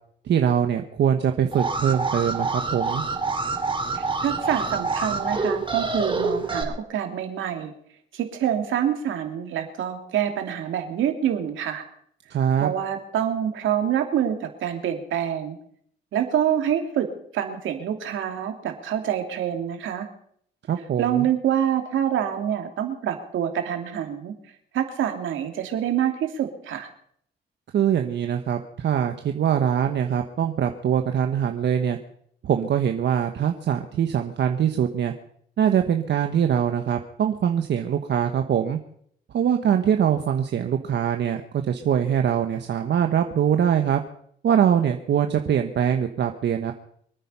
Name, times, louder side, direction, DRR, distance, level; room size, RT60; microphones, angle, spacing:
voice 1, 0.2-3.0 12.3-12.7 20.7-21.3 27.7-32.0 32.4-35.1 35.6-38.8 39.3-44.0 44.4-46.7, right 9 dB, 60° right, 6 dB, 1.2 m, -23 dB
Alarm, 1.5-6.6, right 3 dB, 25° right, 3.9 m, -26 dB
voice 2, 3.9-7.7 8.1-11.8 12.6-15.6 16.1-17.1 17.3-20.1 21.0-24.3 24.7-26.9, right 9 dB, 75° right, 5 dB, 2.7 m, -26 dB
24.5 x 9.3 x 5.6 m, 0.66 s
cardioid pair, 90°, 20 cm